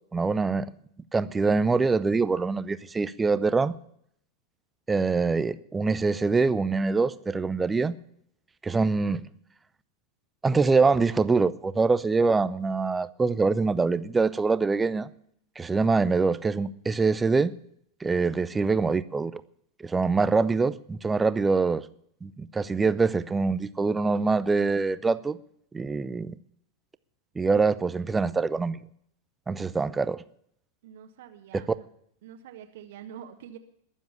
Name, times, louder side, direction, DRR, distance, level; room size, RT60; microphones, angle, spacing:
voice 1, 0.1-0.7 1.1-3.8 4.9-8.0 8.6-9.2 10.4-15.1 15.6-17.5 18.0-19.4 19.8-21.8 22.2-25.4 25.7-26.3 27.4-28.8 29.5-30.2, right 4 dB, 15° right, 0.6 m, -24 dB
voice 2, 30.8-31.9 32.2-33.6, right 9 dB, 55° right, 1.4 m, -45 dB
21.5 x 7.4 x 6.9 m
figure-of-eight pair, 90°, 0 cm